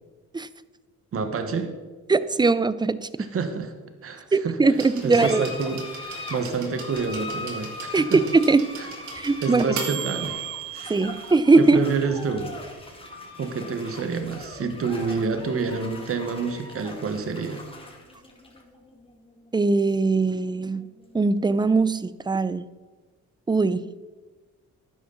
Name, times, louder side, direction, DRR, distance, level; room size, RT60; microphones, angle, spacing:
voice 1, 1.1-1.7 3.3-3.7 4.0-4.6 5.0-8.2 8.8-8.9 9.4-10.4 10.7-10.9 11.6-12.5 13.4-17.6, right 5 dB, 50° right, 7 dB, 1.3 m, -28 dB
voice 2, 2.1-3.3 4.3-5.4 7.9-8.7 9.1-9.7 10.9-11.8 19.5-22.6 23.5-23.9, right 3 dB, 15° right, 16 dB, 0.5 m, -21 dB
sound 1, 4.7-21.7, left 2 dB, 20° left, 2.2 m, -41 dB
sound 2, 4.8-12.6 13.7-13.8, right 7 dB, 70° right, 2.5 m, -37 dB
12.0 x 9.7 x 4.0 m, 1.3 s
cardioid pair, 90°, 30 cm